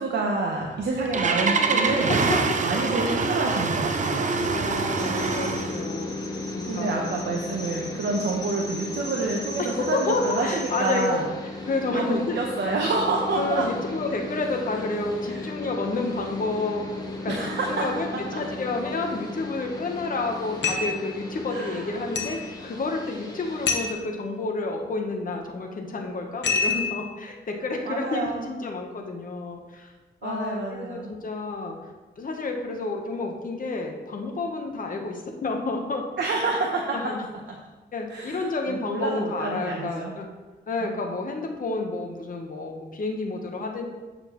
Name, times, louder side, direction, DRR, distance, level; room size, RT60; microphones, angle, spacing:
voice 1, 0.0-2.1 2.6-4.4 6.7-11.2 11.9-13.7 17.3-17.9 18.1-18.4 21.5-21.9 27.8-28.4 30.2-31.1 36.2-37.1 38.1-38.4 38.7-40.2 40.9-41.0, right 3 dB, 70° right, -1 dB, 0.9 m, -28 dB
Engine starting, 0.6-5.8, right 4 dB, 40° right, 0.6 m, -25 dB
voice 2, 2.0-2.6 3.0-3.2 4.4-6.3 6.6-7.3 8.1-8.3 9.6-11.2 11.7-12.4 13.3-16.8 17.2-29.9 30.2-31.7 32.2-36.0 36.9-37.2 37.9-40.3 40.7-43.8, left 3 dB, 45° left, 2 dB, 1.1 m, -30 dB
sound 1, 5.0-23.9, left 2 dB, 20° left, 1.2 m, -36 dB
sound 2, 20.6-21.0 22.2-22.5 23.7-24.0 26.4-27.1, left 4 dB, 75° left, 0.9 m, -26 dB
7.1 x 6.5 x 3.1 m, 1.2 s
wide cardioid pair, 115°, 19 cm